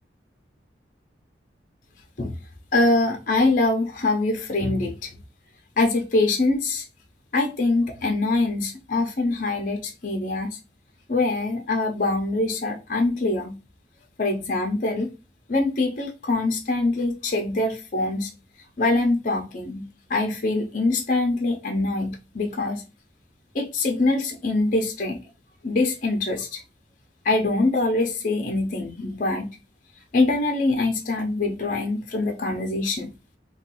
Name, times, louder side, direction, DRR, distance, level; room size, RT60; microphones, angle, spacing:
voice 1, 2.7-5.1 5.8-6.8 7.3-10.6 11.1-13.6 14.2-15.1 15.5-18.3 18.8-22.8 23.5-25.2 25.6-26.6 27.2-29.6 30.1-33.1, left 2 dB, 50° left, 0.6 m, -24 dB
3.1 x 2.3 x 2.9 m
head